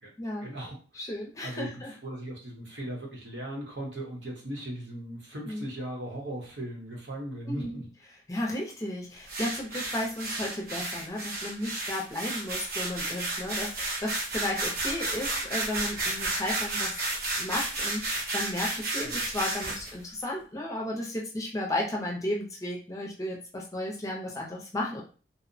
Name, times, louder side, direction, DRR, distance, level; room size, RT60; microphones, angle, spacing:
voice 1, 0.4-0.8 1.4-7.9 19.0-19.2, right 1 dB, 75° right, -1 dB, 0.9 m, -38 dB
voice 2, 0.9-1.9 5.5-5.7 7.5-7.8 8.3-17.0 17.4-25.0, left 1 dB, 15° left, -2 dB, 0.5 m, -34 dB
sound 1, 9.3-19.9, right 2 dB, 50° right, 0.6 m, -32 dB
2.7 x 2.0 x 2.6 m, 0.38 s
head